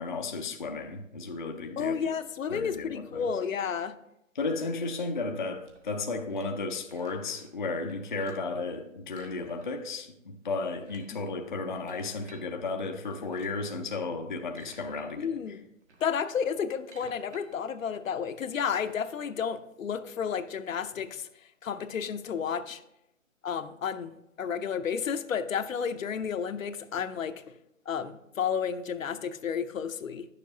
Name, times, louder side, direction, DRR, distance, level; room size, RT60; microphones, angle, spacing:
voice 1, 0.0-1.9 2.5-3.3 4.4-15.4, left 3 dB, 40° left, 0.4 m, -34 dB
voice 2, 1.8-3.9 15.2-15.7 16.0-21.3 21.6-22.8 23.4-27.4 27.9-30.3, left 7 dB, 75° left, 0.7 m, -32 dB
sound 1, 5.6-7.6 7.9-8.6 9.1-10.0 10.2-10.3 10.7-12.5 13.1-13.7 14.2-15.1 15.4-18.8, right 3 dB, 60° right, 1.6 m, -56 dB
10.0 x 6.7 x 2.7 m
hypercardioid pair, 165°, 40 cm